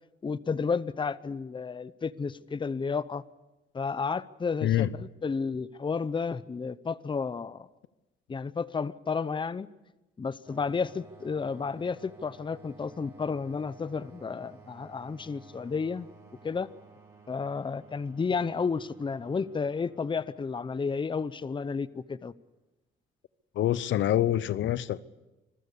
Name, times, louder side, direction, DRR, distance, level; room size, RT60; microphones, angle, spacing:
voice 1, 0.2-3.2 3.7-7.7 8.3-9.7 10.2-16.1 16.4-16.7 17.3-22.3, left 5 dB, 25° left, 0.7 m, -32 dB
sound 1, 10.4-21.8, right 3 dB, 15° right, 6.1 m, -54 dB
voice 2, 23.5-25.0, left 12 dB, 75° left, 0.8 m, -26 dB
25.0 x 15.5 x 8.3 m
cardioid pair, 90°, 20 cm